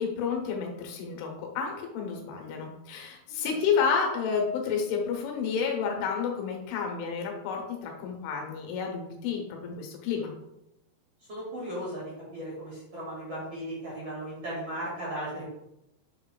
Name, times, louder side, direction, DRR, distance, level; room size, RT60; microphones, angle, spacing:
voice 1, 0.0-10.3, left 6 dB, 85° left, 1 dB, 3.5 m, -30 dB
voice 2, 11.3-15.5, right 1 dB, 45° right, -8 dB, 2.2 m, -36 dB
8.0 x 5.5 x 2.3 m, 0.86 s
omnidirectional pair, 5.4 m